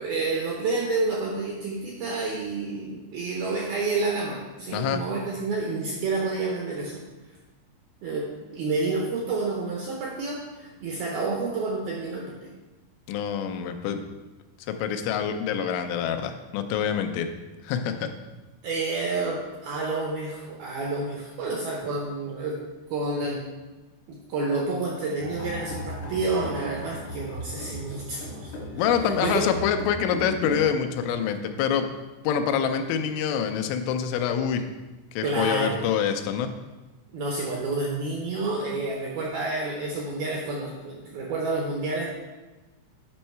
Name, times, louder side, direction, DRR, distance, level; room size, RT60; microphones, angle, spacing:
voice 1, 0.0-7.0 8.0-12.4 18.6-22.6 22.9-23.4 24.1-28.5 29.0-29.4 35.2-35.9 37.1-42.1, right 3 dB, 80° right, -2 dB, 2.2 m, -29 dB
voice 2, 4.7-5.0 13.1-14.0 14.7-17.3 17.6-18.1 28.8-31.9 32.2-34.7 35.1-36.5, left 8 dB, 90° left, 7 dB, 3.1 m, -26 dB
sound 1, 25.2-30.7, left 1 dB, 70° left, 1.8 m, -36 dB
9.6 x 5.4 x 4.4 m, 1.2 s
omnidirectional pair, 5.5 m